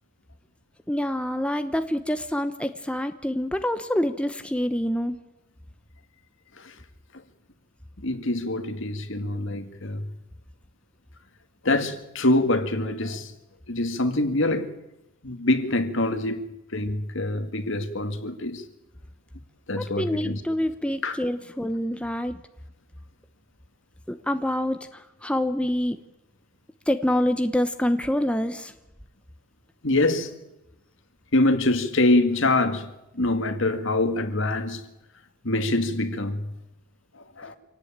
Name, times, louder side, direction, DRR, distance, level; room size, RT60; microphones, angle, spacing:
voice 1, 0.9-5.1 19.7-22.3 24.1-24.8 25.2-26.0 26.9-28.7, left 1 dB, 5° left, 0.9 m, -26 dB
voice 2, 8.0-10.1 11.6-13.3 13.7-14.7 15.2-18.6 19.7-20.4 21.0-21.2 29.8-30.4 31.3-34.8 35.4-36.5 37.1-37.6, left 2 dB, 60° left, 2.2 m, -25 dB
26.0 x 18.0 x 8.9 m
head